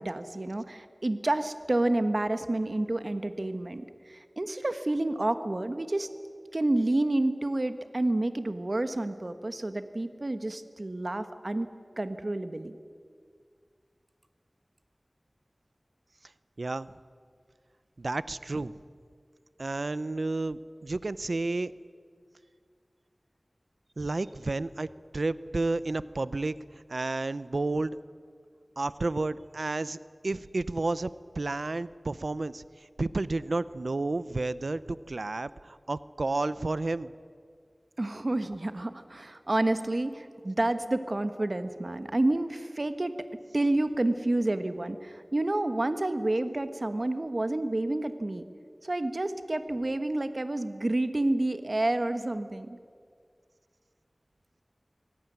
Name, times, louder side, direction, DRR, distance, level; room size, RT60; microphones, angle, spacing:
voice 1, 0.0-6.1 6.5-11.7 12.0-12.8 38.0-43.1 43.5-48.4 48.8-52.8, right 2 dB, 55° right, 9 dB, 1.4 m, -29 dB
voice 2, 16.6-16.9 18.0-18.7 19.6-21.7 24.0-24.9 25.1-26.5 26.9-28.0 28.8-30.0 30.2-31.1 31.4-37.1, right 2 dB, 85° right, 16 dB, 0.6 m, -31 dB
24.5 x 18.0 x 9.4 m, 2.1 s
wide cardioid pair, 50°, 0 cm